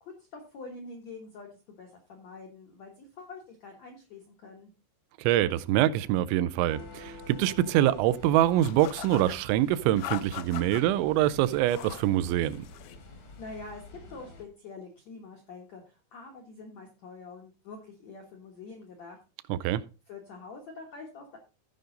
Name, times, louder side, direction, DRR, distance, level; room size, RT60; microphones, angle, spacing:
voice 1, 0.0-4.7 13.4-19.2 20.1-21.4, left 3 dB, 70° left, 1.6 m, -46 dB
voice 2, 5.2-12.7 19.5-19.8, right 13 dB, 90° right, 3.0 m, -25 dB
sound 1, 6.7-14.4, left 2 dB, 55° left, 1.3 m, -48 dB
sound 2, 8.6-9.4 10.0-10.8 11.5-12.1 12.4-13.0, left 14 dB, 90° left, 2.2 m, -40 dB
15.5 x 5.2 x 3.9 m
omnidirectional pair, 5.3 m